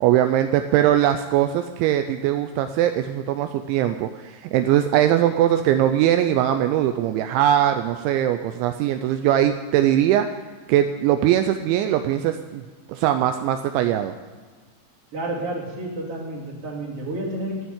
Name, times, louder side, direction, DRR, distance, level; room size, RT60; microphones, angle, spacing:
voice 1, 0.0-10.3 10.7-12.6 12.9-14.1, right 11 dB, 85° right, 8 dB, 2.9 m, -21 dB
voice 2, 15.1-17.7, right 1 dB, 35° right, -3 dB, 3.2 m, -30 dB
15.5 x 7.1 x 9.4 m, 1.5 s
omnidirectional pair, 5.4 m